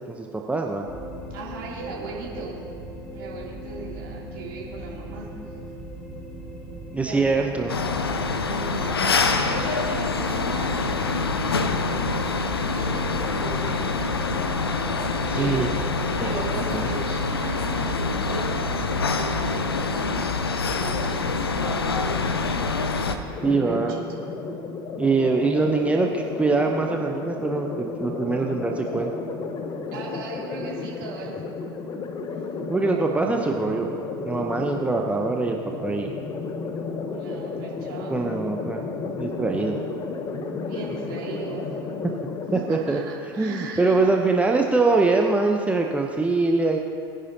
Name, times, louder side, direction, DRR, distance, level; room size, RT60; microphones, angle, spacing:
voice 1, 0.1-0.9 6.9-7.7 15.2-15.7 16.2-16.3 16.7-16.9 23.4-23.9 25.0-29.1 32.7-33.9 34.2-36.1 38.1-38.8 39.2-39.8 42.5-43.0 43.4-46.8, right 3 dB, 10° right, 2 dB, 0.8 m, -23 dB
sound 1, 0.8-16.8, equal, 5° left, 2.2 m, -39 dB
voice 2, 1.3-2.7 3.1-5.5 7.1-7.5 8.5-12.5 12.7-13.1 13.4-14.4 14.7-23.0 23.4-24.0 29.9-31.4 37.1-38.2 40.6-41.7 42.5-44.1, right 4 dB, 55° right, -5 dB, 3.0 m, -38 dB
sound 2, 7.7-23.2, left 4 dB, 80° left, 0.7 m, -25 dB
sound 3, 23.3-42.7, left 4 dB, 30° left, 1.0 m, -33 dB
21.5 x 10.0 x 2.8 m, 2.4 s
figure-of-eight pair, 80°, 13 cm